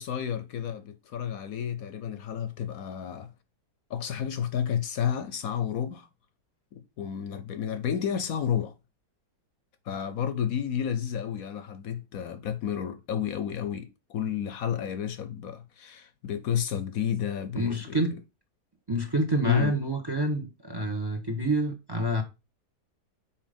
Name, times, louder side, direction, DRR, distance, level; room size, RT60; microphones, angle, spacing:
voice 1, 0.0-3.3 3.9-6.1 6.7-8.7 9.9-18.1 19.4-19.7, left 8 dB, 70° left, 1.0 m, -31 dB
voice 2, 17.6-18.2 18.9-22.2, right 1 dB, 20° right, 0.9 m, -27 dB
5.8 x 4.9 x 5.0 m
omnidirectional pair, 1.7 m